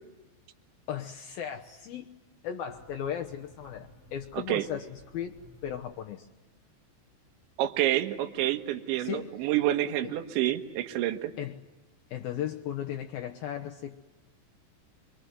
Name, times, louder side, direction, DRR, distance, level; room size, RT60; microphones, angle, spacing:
voice 1, 0.9-2.1 2.4-5.4 5.6-6.3 9.0-9.3 10.0-10.1 11.4-11.6 12.1-14.0, left 9 dB, 75° left, 2.2 m, -36 dB
sound 1, 2.7-6.4, left 2 dB, 25° left, 8.8 m, -56 dB
voice 2, 4.3-4.7 7.6-11.3, right 13 dB, 75° right, 3.6 m, -28 dB
26.0 x 24.0 x 9.4 m
omnidirectional pair, 5.6 m